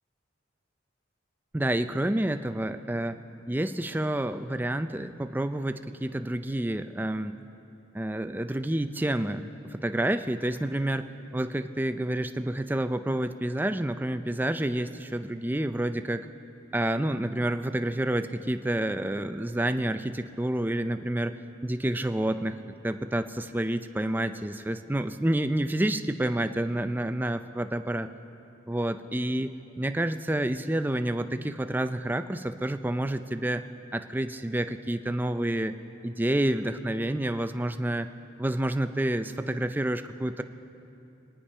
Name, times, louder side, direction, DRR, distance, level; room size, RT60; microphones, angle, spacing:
voice 1, 1.5-3.2 3.5-7.3 7.9-16.3 16.7-28.1 28.7-33.6 33.9-35.8 36.0-38.1 38.4-40.4, right 1 dB, 10° right, 9 dB, 0.4 m, -29 dB
25.5 x 10.5 x 5.6 m, 2.8 s
head